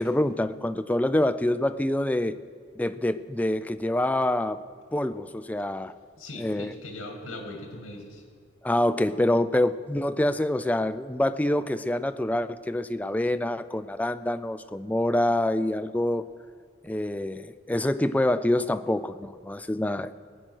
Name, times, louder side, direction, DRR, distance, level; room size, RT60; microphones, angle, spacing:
voice 1, 0.0-2.4 2.8-4.6 4.9-5.9 6.4-6.7 8.6-16.3 16.8-20.1, left 1 dB, 10° left, 11 dB, 0.3 m, -26 dB
voice 2, 6.1-8.2, left 2 dB, 75° left, 3 dB, 2.2 m, -40 dB
19.5 x 8.9 x 6.3 m, 2.1 s
head